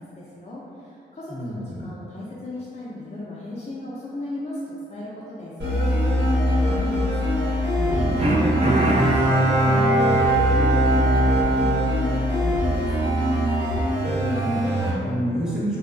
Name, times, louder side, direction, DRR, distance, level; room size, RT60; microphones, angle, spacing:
voice 1, 0.0-7.5 7.9-13.3, left 2 dB, 35° left, -7 dB, 0.5 m, -36 dB
voice 2, 1.3-1.8 7.9-8.2 14.0-15.8, equal, 5° right, -8 dB, 1.0 m, -29 dB
sound 1, 5.6-14.9, equal, 65° right, 1.3 m, -22 dB
Bowed string instrument, 8.2-12.7 13.1-13.2, right 2 dB, 35° right, 0.5 m, -22 dB
2.6 x 2.3 x 2.4 m, 2.6 s
cardioid pair, 55°, 20 cm